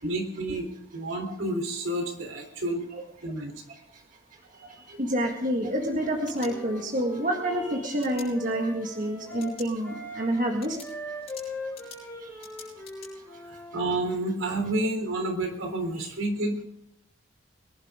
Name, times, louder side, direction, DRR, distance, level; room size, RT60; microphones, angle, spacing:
voice 1, 0.0-0.7 0.9-2.8 3.2-3.6 4.9-5.0 13.5-16.6, right 1 dB, 80° right, 3 dB, 3.5 m, -30 dB
voice 2, 5.0-10.8 12.2-12.3, right 1 dB, 40° right, 1 dB, 1.8 m, -28 dB
Wind instrument woodwind instrument, 5.9-13.9, left 1 dB, 10° left, 5.1 m, -41 dB
sound 1, 6.1-7.1 8.0-8.3 9.3-9.7 10.1-10.2 10.6-13.1, left 6 dB, 30° left, 7.8 m, -47 dB
24.0 x 11.5 x 3.7 m, 0.76 s
head